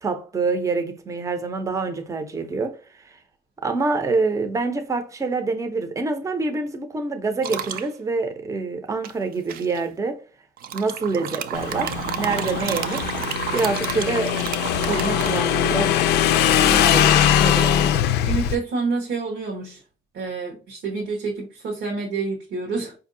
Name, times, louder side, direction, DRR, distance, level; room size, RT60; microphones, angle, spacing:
voice 1, 0.0-2.8 3.0-3.2 3.6-10.2 10.7-13.1 13.5-14.4 14.8-16.0 16.5-17.9, right 3 dB, 20° right, 0.6 m, -26 dB
sound 1, 7.4-7.9 9.0-9.8 10.6-15.9, right 9 dB, 60° right, 0.4 m, -31 dB
Motorcycle / Engine, 11.5-18.6, left 10 dB, 80° left, 0.4 m, -21 dB
voice 2, 18.2-19.8 20.1-22.9, right 4 dB, 85° right, 1.2 m, -28 dB
4.5 x 2.6 x 2.6 m
cardioid pair, 110°, 17 cm